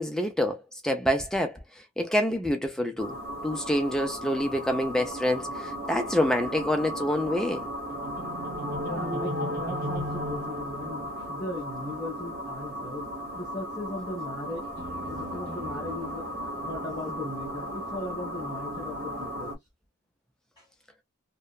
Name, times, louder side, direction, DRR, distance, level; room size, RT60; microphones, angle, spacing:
voice 1, 0.0-1.6 2.0-3.2 3.4-7.6, left 1 dB, 5° left, 0.4 m, -27 dB
sound 1, 3.0-19.5, equal, 45° right, 1.4 m, -35 dB
voice 2, 8.8-13.1 13.4-14.7 15.0-19.5 20.6-20.7, left 2 dB, 20° left, 1.0 m, -38 dB
2.8 x 2.1 x 2.3 m
head